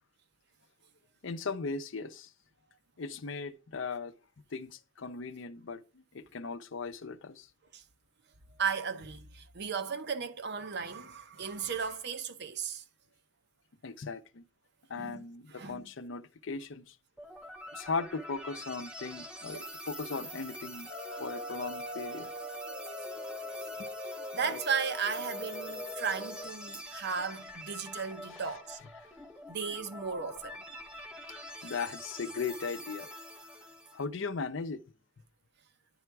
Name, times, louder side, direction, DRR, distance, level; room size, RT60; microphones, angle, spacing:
voice 1, 1.2-2.3 3.0-4.2 4.5-7.5 13.8-14.4 14.9-17.0 17.7-20.9 21.2-22.3 24.4-24.6 28.3-28.4 31.3-33.1 33.9-34.8, left 4 dB, 70° left, 0.6 m, -38 dB
voice 2, 8.6-12.8 14.9-15.2 15.5-15.8 24.3-28.8 29.5-30.6, right 6 dB, 60° right, 0.8 m, -35 dB
sound 1, 17.2-34.0, equal, 5° right, 1.3 m, -46 dB
sound 2, 20.9-26.5, left 1 dB, 20° right, 3.1 m, -41 dB
9.9 x 3.5 x 4.6 m
head